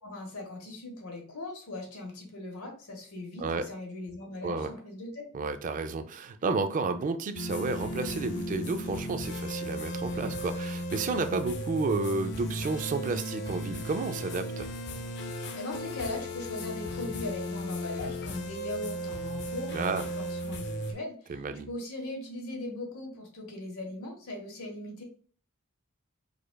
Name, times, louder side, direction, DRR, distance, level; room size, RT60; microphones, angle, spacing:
voice 1, 0.0-5.3 15.5-21.1 21.7-25.0, left 2 dB, 85° left, 1.1 m, -39 dB
voice 2, 5.3-14.7 19.7-20.1 21.3-21.7, right 3 dB, 35° right, 0.3 m, -31 dB
sound 1, 7.3-20.9, equal, 50° left, 0.5 m, -36 dB
4.8 x 2.3 x 2.2 m
head